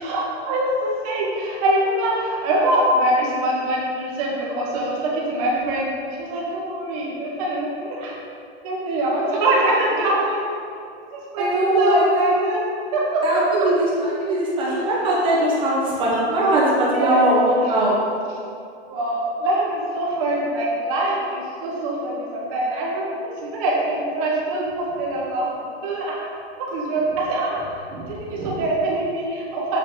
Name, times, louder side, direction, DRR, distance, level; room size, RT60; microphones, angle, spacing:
voice 1, 0.0-8.2 8.6-10.5 11.0-13.4 14.7-14.8 16.1-17.3 18.9-26.3 26.6-29.8, right 1 dB, 30° right, -3 dB, 1.4 m, -24 dB
voice 2, 11.4-12.0 13.2-18.0 27.9-28.6, right 1 dB, 15° right, -6 dB, 1.2 m, -21 dB
7.4 x 5.4 x 3.9 m, 2.5 s
supercardioid pair, 170°, 33 cm